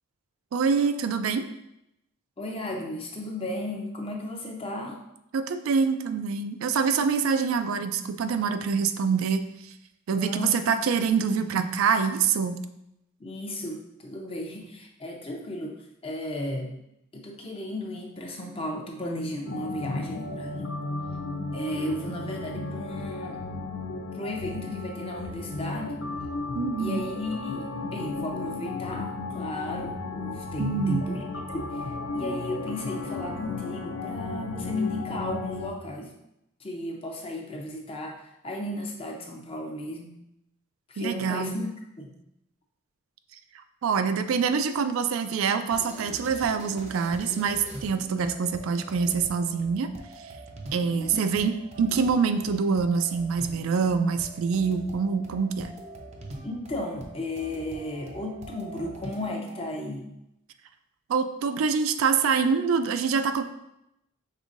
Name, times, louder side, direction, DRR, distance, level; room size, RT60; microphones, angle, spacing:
voice 1, 0.5-1.4 5.3-9.4 10.1-12.6 26.5-27.0 30.6-31.0 41.0-41.5 43.8-49.9 50.7-55.7 61.1-63.4, right 5 dB, 85° right, 9 dB, 0.4 m, -25 dB
voice 2, 2.4-5.0 10.1-10.7 13.2-16.7 17.1-20.7 21.5-23.4 24.1-26.0 26.8-36.1 36.6-40.1 40.9-41.7 42.0-42.1 50.8-51.3 56.4-60.1, left 1 dB, 25° left, 1 dB, 0.6 m, -34 dB
sound 1, 19.5-35.7, left 3 dB, 70° left, 0.5 m, -34 dB
sound 2, 45.7-59.6, right 2 dB, 35° right, 0.5 m, -44 dB
5.5 x 3.5 x 2.5 m, 0.84 s
head